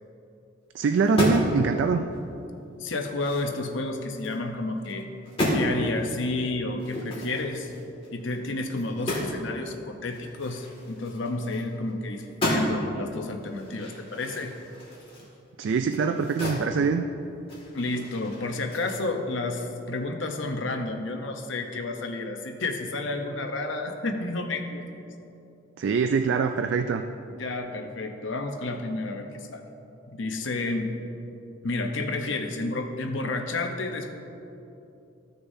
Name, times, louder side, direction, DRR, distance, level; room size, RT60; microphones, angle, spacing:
voice 1, 0.7-2.0 15.6-17.0 25.8-27.0, right 5 dB, 60° right, 7 dB, 0.3 m, -24 dB
sound 1, 1.0-1.6 2.0-2.2 2.6-4.4 4.8-5.0 5.2-5.6 6.8-9.4 9.7-9.8 10.1-11.9 12.2-12.9 13.4-16.7 17.0-19.0, equal, 25° left, 2.0 m, -32 dB
voice 2, 2.8-5.1 5.5-7.7 8.1-14.5 17.7-24.9 27.3-29.6 30.1-30.9 31.6-34.1, left 2 dB, 65° left, 4 dB, 0.8 m, -31 dB
14.5 x 6.6 x 2.7 m, 2.9 s
head